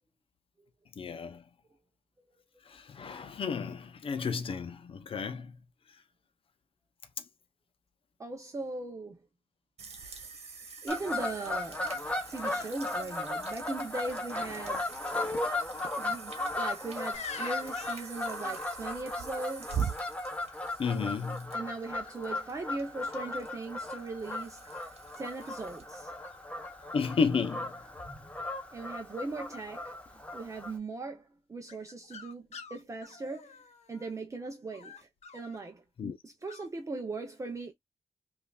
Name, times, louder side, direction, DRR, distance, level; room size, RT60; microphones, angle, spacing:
voice 1, 1.0-1.4 2.7-5.6 20.8-21.6 26.9-27.8 36.0-36.2, left 5 dB, 55° left, 0.7 m, -32 dB
voice 2, 8.2-9.2 10.8-11.9 12.3-14.9 16.0-19.9 21.5-26.1 28.7-33.6 33.9-35.8 36.2-37.7, right 3 dB, 30° right, 0.7 m, -39 dB
sound 1, 9.8-25.9, right 7 dB, 65° right, 1.2 m, -44 dB
Fowl / Bird vocalization bird call bird song, 10.9-30.8, left 2 dB, 10° left, 1.0 m, -37 dB
sound 2, 17.1-18.9 22.0-22.5 23.2-24.0 24.6-25.6 26.2-26.4 26.6-27.1 27.4-28.0 31.7-34.2 34.7-35.6 36.5-36.7, left 6 dB, 80° left, 1.0 m, -48 dB
5.5 x 2.5 x 2.3 m
wide cardioid pair, 150°, 11 cm